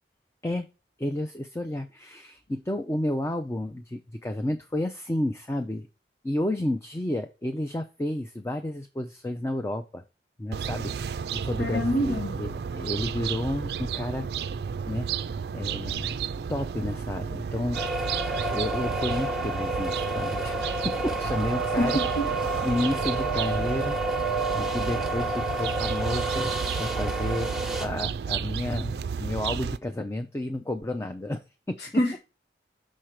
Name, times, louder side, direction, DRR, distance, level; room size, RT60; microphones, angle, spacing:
voice 1, 1.0-5.9 6.2-10.0 10.4-14.3 14.9-15.1 15.5-16.1 16.5-17.8 18.5-20.6 20.8-22.0 22.6-26.5 26.8-27.5 27.8-32.0, left 1 dB, 15° left, 0.4 m, -31 dB
sound 1, 10.5-29.8, right 6 dB, 65° right, 0.3 m, -32 dB
voice 2, 11.6-12.3 21.8-22.3 32.0-32.2, equal, 70° left, 1.0 m, -25 dB
sound 2, 17.7-27.9, right 2 dB, 5° right, 1.1 m, -29 dB
6.5 x 4.5 x 4.8 m
head